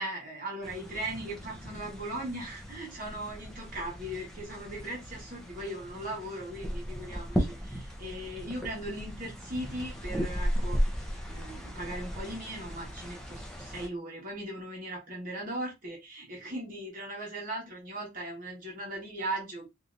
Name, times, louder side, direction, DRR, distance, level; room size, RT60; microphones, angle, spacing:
voice 1, 0.0-10.8 11.3-19.7, right 1 dB, 40° right, -3 dB, 1.2 m, -38 dB
sound 1, 0.6-13.9, equal, 5° left, 0.6 m, -36 dB
3.3 x 2.8 x 2.5 m, 0.22 s
head